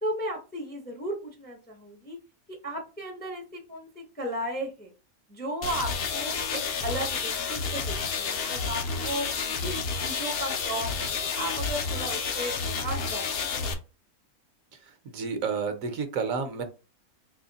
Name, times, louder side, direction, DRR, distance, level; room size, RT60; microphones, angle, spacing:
voice 1, 0.0-2.2 2.5-4.9 5.3-9.3 9.6-12.6 12.8-13.7, right 1 dB, 10° left, 1 dB, 0.4 m, -35 dB
sound 1, 5.6-13.7, left 5 dB, 60° left, 0.6 m, -30 dB
voice 2, 15.0-16.6, right 5 dB, 70° right, 7 dB, 1.0 m, -30 dB
3.0 x 2.8 x 3.9 m, 0.33 s
omnidirectional pair, 1.6 m